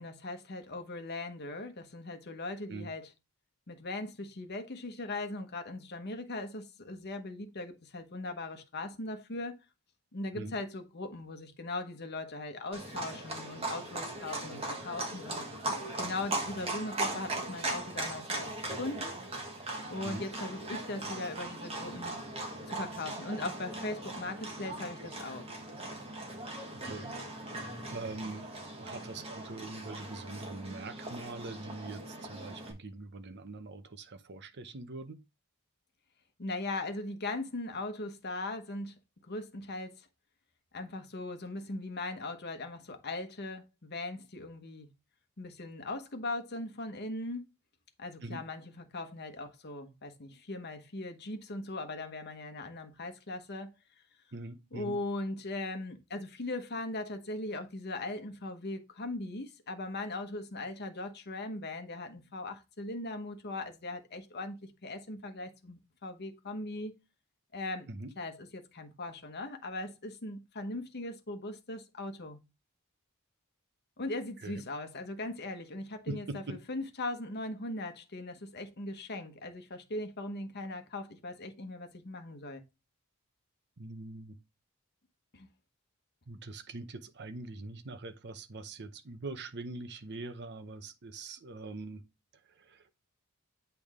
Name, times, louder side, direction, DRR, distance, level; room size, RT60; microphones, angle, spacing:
voice 1, 0.0-3.1 3.7-9.6 10.1-15.4 16.0-19.2 19.9-22.2 22.7-25.5 36.4-38.9 39.3-40.1 40.7-44.9 45.4-47.5 48.0-53.7 54.7-66.9 67.5-67.9 68.2-72.4 74.0-82.6 85.3-85.5, left 2 dB, 50° left, 1.1 m, -39 dB
Livestock farm animals working animals, 12.7-32.7, right 2 dB, 25° right, 1.5 m, -39 dB
voice 2, 26.8-27.1 27.9-28.5 28.8-35.2 48.2-48.4 54.3-54.9 67.9-68.1 74.4-74.6 76.1-76.6 83.8-84.4 86.3-92.0 92.6-92.8, right 2 dB, 50° right, 0.7 m, -43 dB
8.3 x 3.5 x 3.6 m
head